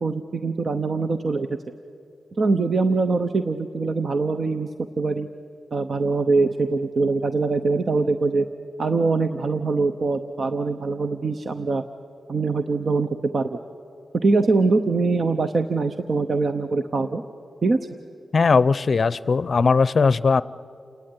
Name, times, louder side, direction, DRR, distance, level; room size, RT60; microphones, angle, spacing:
voice 1, 0.0-1.5 2.4-4.7 5.0-5.3 5.7-8.5 8.8-11.8 12.3-13.6 14.2-17.2 17.6-17.9, right 3 dB, 50° right, 8 dB, 0.8 m, -23 dB
voice 2, 18.3-20.4, left 4 dB, 50° left, 18 dB, 0.6 m, -19 dB
28.5 x 19.0 x 9.6 m, 2.6 s
wide cardioid pair, 110°, 0 cm